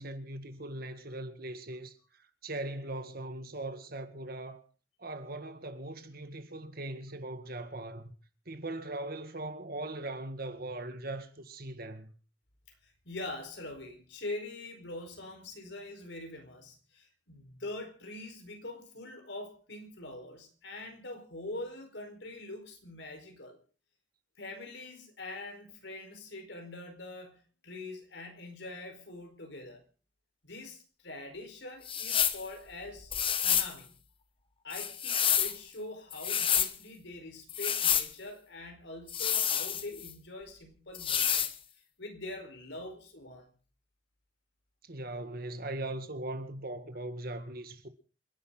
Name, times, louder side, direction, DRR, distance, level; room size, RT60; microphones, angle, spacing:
voice 1, 0.0-4.6 5.0-8.1 8.5-12.1 44.8-47.9, right 2 dB, 55° right, 2.1 m, -40 dB
voice 2, 12.8-23.6 24.4-29.8 30.4-34.0 34.6-41.6 42.0-43.5, left 2 dB, 70° left, 4.7 m, -44 dB
sound 1, 31.9-32.4 33.1-33.7 34.7-35.6 36.1-36.7 37.5-38.1 39.1-40.1 40.9-41.5, left 8 dB, 30° left, 1.2 m, -28 dB
28.0 x 11.0 x 4.0 m
head